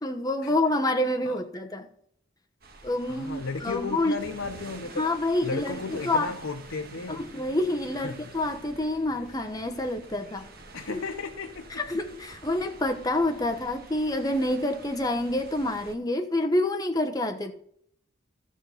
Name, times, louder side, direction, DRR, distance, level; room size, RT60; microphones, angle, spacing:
voice 1, 0.0-1.9 2.8-4.2 5.0-6.3 7.1-10.5 10.9-11.0 11.8-17.5, left 1 dB, 20° left, 5 dB, 1.0 m, -27 dB
sound 1, 2.6-16.0, right 3 dB, 50° right, 1.5 m, -48 dB
voice 2, 3.1-5.1 5.4-7.3 8.0-8.3 10.7-11.7, left 4 dB, 90° left, 6 dB, 0.8 m, -34 dB
sound 2, 3.7-13.7, right 1 dB, 5° right, 4.6 m, -55 dB
13.0 x 6.6 x 5.7 m, 0.66 s
head